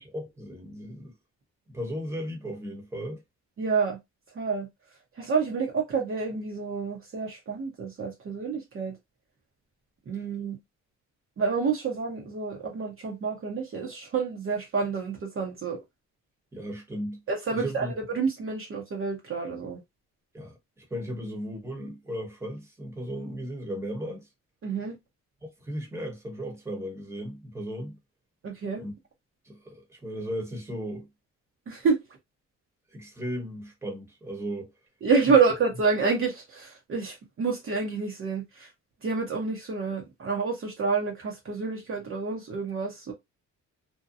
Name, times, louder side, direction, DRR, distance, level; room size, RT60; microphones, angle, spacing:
voice 1, 0.1-1.1 1.7-3.2 16.5-17.2 17.5-17.9 20.3-24.3 25.4-28.0 28.8-28.9 29.4-31.1 32.9-34.7 35.3-35.4, equal, 10° right, 1.0 m, -36 dB
voice 2, 3.6-4.0 4.3-4.7 5.1-9.0 10.1-10.6 11.4-15.8 17.3-19.8 24.6-25.0 28.4-28.8 31.7-32.0 35.0-38.7 39.0-43.1, right 5 dB, 45° right, 0.8 m, -28 dB
2.7 x 2.2 x 2.5 m
cardioid pair, 90°, 30 cm